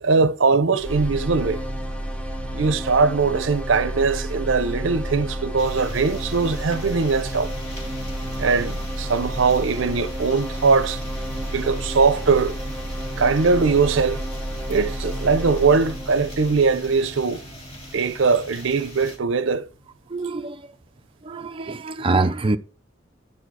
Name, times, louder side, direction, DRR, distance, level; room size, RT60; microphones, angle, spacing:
voice 1, 0.0-1.6 2.5-7.5 8.4-11.0 11.5-12.5 13.2-14.2 14.7-17.4 17.9-19.7, right 4 dB, 70° right, 0.6 m, -21 dB
sound 1, 0.8-18.8, equal, 5° left, 0.9 m, -31 dB
sound 2, 5.6-19.2, equal, 30° left, 3.2 m, -41 dB
voice 2, 20.1-20.7 21.2-22.6, right 3 dB, 30° right, 0.5 m, -24 dB
9.7 x 4.4 x 4.6 m
head